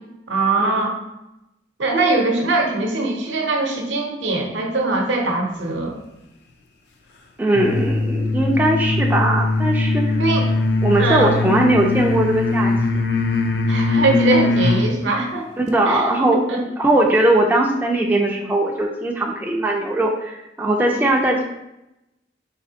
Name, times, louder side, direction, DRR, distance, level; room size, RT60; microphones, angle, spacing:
voice 1, 0.3-1.0 1.8-6.0 10.2-10.5 11.0-11.3 13.7-15.5 15.9-16.0 16.3-16.6, right 2 dB, 80° right, 2 dB, 0.7 m, -21 dB
voice 2, 7.4-10.0 10.8-13.0 15.6-16.4 16.8-21.4, right 1 dB, 10° right, -1 dB, 0.3 m, -19 dB
sound 1, 7.5-14.9, left 3 dB, 65° left, 0.4 m, -20 dB
4.1 x 3.3 x 2.7 m, 0.90 s
head